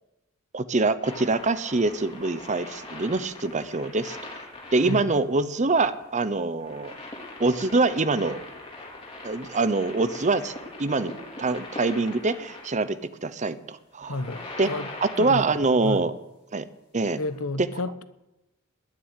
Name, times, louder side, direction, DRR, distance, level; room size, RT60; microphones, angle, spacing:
voice 1, 0.5-4.2 4.7-6.9 7.4-8.4 9.2-10.5 10.8-11.1 11.4-14.2 14.6-14.7 15.0-16.1 16.5-16.7 16.9-17.2, right 3 dB, 35° right, 0.8 m, -24 dB
sound 1, 1.0-12.8 13.9-15.8 17.3-17.4, left 2 dB, 25° left, 4.3 m, -41 dB
voice 2, 14.1-14.9 15.2-15.5 15.8-16.0 17.2-18.0, left 2 dB, 90° left, 1.0 m, -31 dB
20.0 x 6.9 x 9.9 m
head